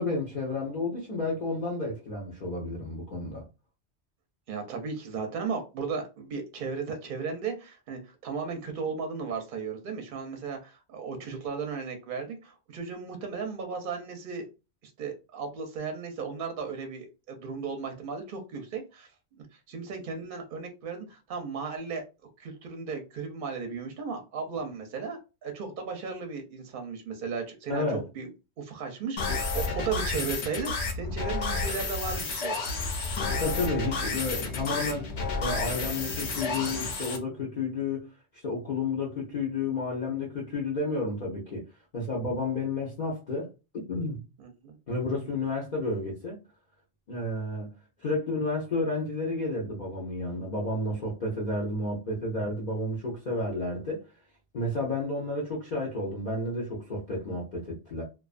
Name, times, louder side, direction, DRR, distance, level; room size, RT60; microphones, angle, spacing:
voice 1, 0.0-3.4 27.7-28.1 33.4-35.1 35.4-38.1 38.3-41.6 41.9-43.5 43.7-44.2 44.9-46.4 47.1-47.7 48.0-54.0 54.5-58.0, left 2 dB, 50° left, 0.7 m, -31 dB
voice 2, 4.5-14.5 15.0-19.1 19.4-22.1 22.4-28.3 28.6-32.7 44.4-44.8, right 5 dB, 60° right, 0.6 m, -35 dB
sound 1, 29.2-37.2, left 3 dB, 75° left, 0.9 m, -31 dB
2.4 x 2.3 x 2.4 m
omnidirectional pair, 1.2 m